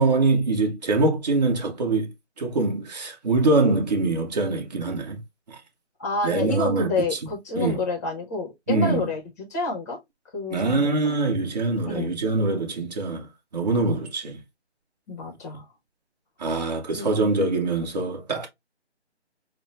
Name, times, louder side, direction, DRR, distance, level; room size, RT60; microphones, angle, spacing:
voice 1, 0.0-5.2 5.5-5.6 6.2-7.2 7.5-7.8 8.7-9.0 10.5-13.3 13.5-14.4 16.4-18.5, right 3 dB, 35° right, 1.4 m, -24 dB
voice 2, 6.0-10.0 10.3-10.9 11.8-12.1 15.1-15.6 17.0-17.3, left 3 dB, 15° left, 1.0 m, -29 dB
6.6 x 2.3 x 2.5 m
figure-of-eight pair, 155°, 35 cm